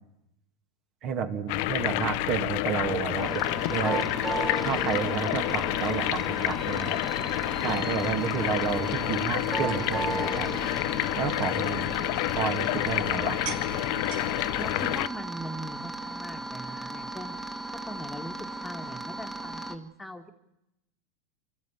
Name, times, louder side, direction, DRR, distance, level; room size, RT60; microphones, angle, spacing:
voice 1, 1.0-4.1 4.6-7.0 7.6-10.5 11.2-11.9 12.4-13.4, right 7 dB, 45° right, 7 dB, 2.5 m, -31 dB
sound 1, 1.5-15.1, left 18 dB, 60° left, 0.7 m, -29 dB
sound 2, 3.2-19.7, right 2 dB, 10° right, 1.7 m, -36 dB
sound 3, 7.9-14.9, right 7 dB, 60° right, 2.2 m, -47 dB
voice 2, 14.6-18.3 18.6-20.3, equal, 5° left, 4 dB, 1.8 m, -40 dB
24.5 x 13.5 x 9.1 m, 0.88 s
hypercardioid pair, 95°, 0 cm